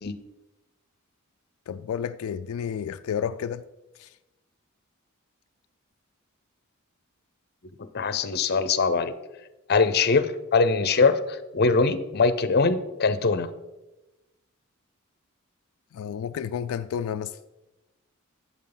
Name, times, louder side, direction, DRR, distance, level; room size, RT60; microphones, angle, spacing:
voice 1, 1.7-3.7 4.0-4.2 15.9-17.4, left 8 dB, 90° left, 0.3 m, -31 dB
voice 2, 7.8-9.1 9.7-13.5, left 4 dB, 50° left, 0.7 m, -22 dB
11.5 x 8.3 x 4.0 m
head